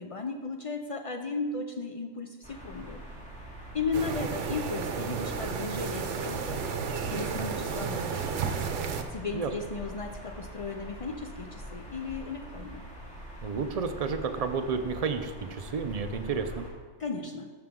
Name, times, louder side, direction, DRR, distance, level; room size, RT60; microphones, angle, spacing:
voice 1, 0.0-3.0 3.7-6.6 7.1-8.4 9.1-12.9 17.0-17.5, left 4 dB, 60° left, 5 dB, 0.3 m, -35 dB
sound 1, 2.4-16.7, right 1 dB, 5° left, 2.1 m, -44 dB
sound 2, 3.9-9.0, right 5 dB, 75° right, 1.0 m, -32 dB
voice 2, 13.4-16.7, right 5 dB, 45° right, 7 dB, 0.5 m, -31 dB
13.5 x 5.8 x 3.7 m, 1.5 s
omnidirectional pair, 1.3 m